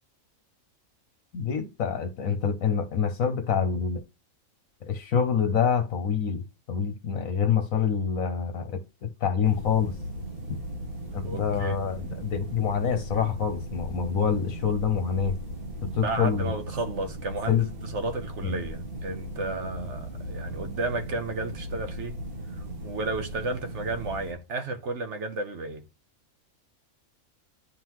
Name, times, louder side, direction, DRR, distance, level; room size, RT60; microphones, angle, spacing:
voice 1, 1.3-4.0 4.8-9.9 11.1-15.4 15.9-16.5 17.5-17.7 18.4-18.5, left 7 dB, 70° left, 1.2 m, -26 dB
sound 1, 9.4-24.3, right 1 dB, 80° right, 3.1 m, -37 dB
voice 2, 11.2-11.8 15.8-22.2 22.5-25.8, right 3 dB, 55° right, 1.1 m, -33 dB
10.5 x 3.8 x 3.0 m
omnidirectional pair, 1.5 m